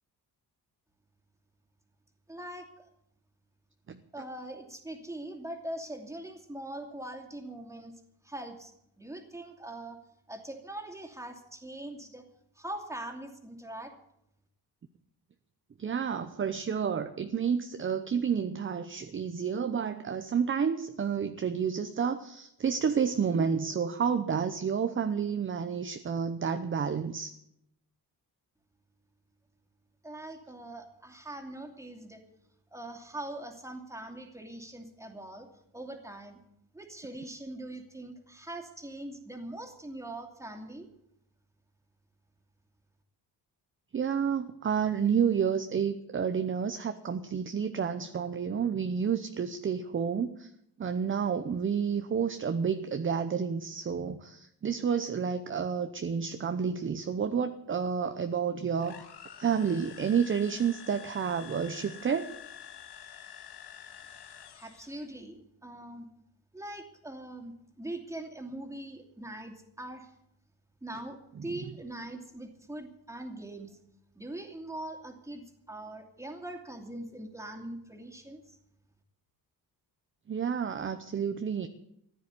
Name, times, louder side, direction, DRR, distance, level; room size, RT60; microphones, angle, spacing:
voice 1, 2.3-2.9 4.1-7.9 8.2-10.0 10.3-12.2 12.6-13.9 30.0-32.2 32.7-35.5 35.7-36.4 36.7-40.9 64.5-66.1 66.5-70.1 70.8-73.8 74.2-78.6, right 1 dB, 5° right, 3 dB, 2.6 m, -42 dB
voice 2, 15.8-27.3 43.9-50.5 50.8-58.9 59.4-62.3 71.4-71.6 80.3-81.7, right 7 dB, 30° right, 9 dB, 0.8 m, -30 dB
sound 1, 58.8-65.1, left 9 dB, 75° left, 1.7 m, -48 dB
15.0 x 10.5 x 8.3 m, 0.77 s
cardioid pair, 130°, 39 cm